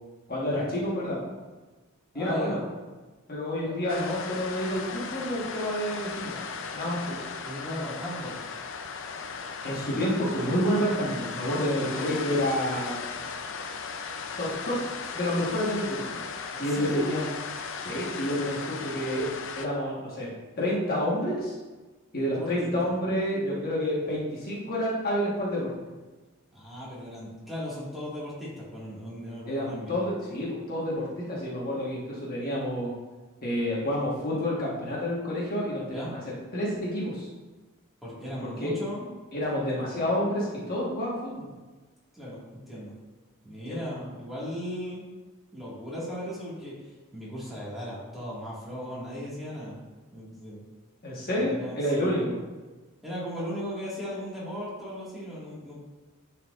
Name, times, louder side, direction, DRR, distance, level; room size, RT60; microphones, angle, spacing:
voice 1, 0.3-1.3 2.1-2.6 3.3-6.4 6.7-7.2 9.6-12.9 14.4-14.9 15.1-16.2 16.6-17.2 17.8-19.3 19.5-20.3 20.6-21.6 22.1-25.7 29.5-32.9 33.4-36.2 36.5-37.3 38.4-38.7 39.3-41.5 43.7-43.8 51.0-52.4, equal, 45° left, -5 dB, 1.4 m, -29 dB
voice 2, 2.1-2.6 7.5-8.4 16.5-17.1 22.3-22.9 26.5-30.0 35.9-36.1 38.0-39.1 42.1-42.4 42.7-42.9 43.4-45.1 45.5-49.8 50.1-50.6 51.3-52.4 53.0-55.7, equal, ahead, -8 dB, 1.9 m, -37 dB
sound 1, 3.9-19.7, left 5 dB, 60° left, 0.5 m, -37 dB
10.5 x 4.5 x 2.5 m, 1.3 s
head